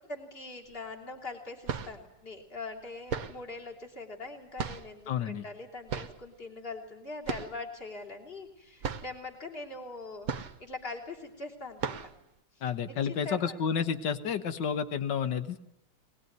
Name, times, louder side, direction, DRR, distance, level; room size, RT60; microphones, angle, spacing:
voice 1, 0.0-12.0 12.5-13.6, left 3 dB, 30° left, 1 dB, 3.3 m, -42 dB
sound 1, 0.7-0.8 1.5-2.1 3.1-3.5 4.6-5.1 5.9-6.3 7.2-7.7 8.0-8.1 8.5-8.6 8.8-9.2 10.2-10.8 11.2-11.3 11.8-12.2, right 6 dB, 55° right, 1.4 m, -36 dB
voice 2, 5.1-5.5 12.6-15.6, left 7 dB, 75° left, 10 dB, 2.0 m, -30 dB
23.0 x 20.0 x 9.4 m, 0.81 s
omnidirectional pair, 1.9 m